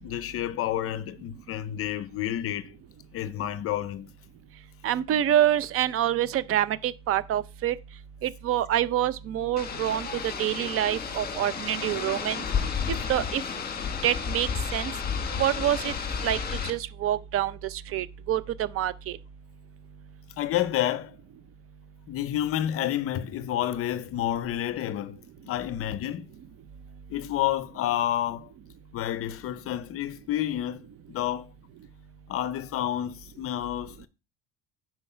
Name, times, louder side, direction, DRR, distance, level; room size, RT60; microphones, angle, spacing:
voice 1, 0.0-2.7 3.1-4.1 20.4-21.2 22.1-25.2 25.5-26.3 27.1-28.5 28.9-30.8 31.1-31.5 32.3-34.1, left 12 dB, 45° left, 0.5 m, -29 dB
voice 2, 4.8-7.8 8.2-12.4 12.9-13.4 14.0-14.9 15.3-15.9 16.2-16.4 16.6-19.2, right 11 dB, 45° right, 0.6 m, -26 dB
sound 1, 9.6-16.7, left 6 dB, 30° left, 1.5 m, -32 dB
9.6 x 4.4 x 5.5 m
cardioid pair, 160°, 33 cm